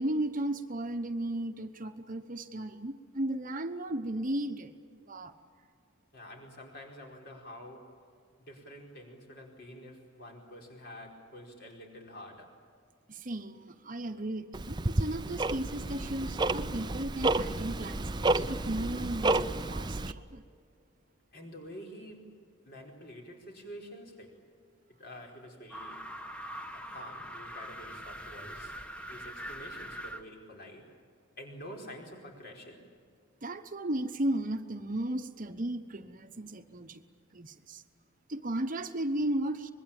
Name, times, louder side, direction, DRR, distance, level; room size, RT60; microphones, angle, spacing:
voice 1, 0.0-5.3 13.1-20.4 33.4-37.0 37.3-37.8 38.3-39.7, right 1 dB, 40° right, 8 dB, 1.0 m, -35 dB
voice 2, 6.1-7.9 8.4-12.6 21.3-22.3 22.6-24.4 25.0-26.1 26.7-28.8 29.1-31.0 31.4-32.9, equal, 50° left, 1 dB, 4.7 m, -48 dB
Tick-tock, 14.5-20.1, right 2 dB, 20° right, 0.6 m, -31 dB
sound 1, 25.7-30.2, equal, 5° left, 1.3 m, -42 dB
25.0 x 21.5 x 8.9 m, 2.3 s
head